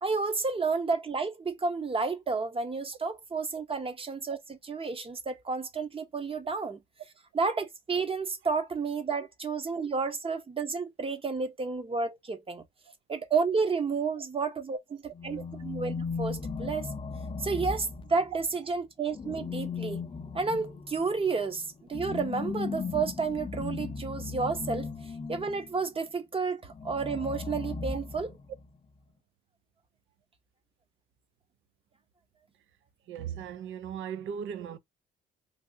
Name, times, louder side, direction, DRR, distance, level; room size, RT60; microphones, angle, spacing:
voice 1, 0.0-6.8 7.3-12.6 13.1-14.8 15.2-16.9 17.4-20.0 20.3-24.9 25.3-28.3, right 4 dB, 30° right, 0.8 m, -31 dB
sound 1, 15.1-18.5 19.1-25.7 26.7-28.7, left 4 dB, 25° left, 0.5 m, -37 dB
voice 2, 33.1-34.8, right 8 dB, 75° right, 0.5 m, -38 dB
3.4 x 2.6 x 2.5 m
cardioid pair, 90°, 20 cm